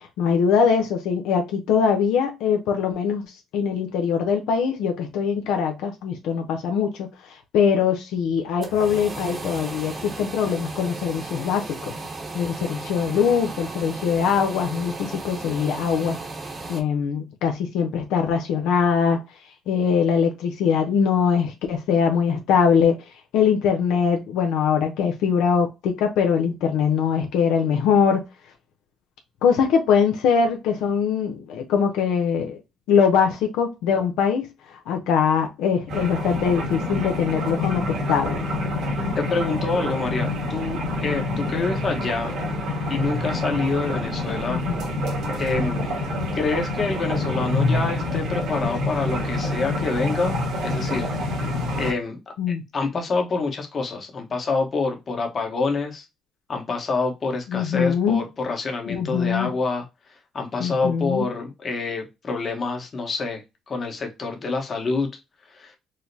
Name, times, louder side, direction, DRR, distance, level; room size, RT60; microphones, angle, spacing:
voice 1, 0.0-11.9 12.3-16.2 16.7-19.2 19.7-28.2 29.4-32.6 32.9-38.4 44.5-44.8 52.4-52.6 57.5-58.2 58.9-59.5 60.6-61.3, left 6 dB, 90° left, 0.6 m, -22 dB
sound 1, 8.3-16.8, right 3 dB, 35° right, 1.0 m, -35 dB
sound 2, 35.9-51.9, left 1 dB, 75° right, 1.5 m, -27 dB
voice 2, 39.1-42.3 42.9-44.6 45.4-45.9 46.3-50.4 50.6-51.1 51.8-52.2 52.7-56.0 56.5-59.8 60.3-65.1 65.5-65.7, left 3 dB, 40° left, 1.1 m, -27 dB
4.8 x 2.0 x 2.7 m
cardioid pair, 95°, 0 cm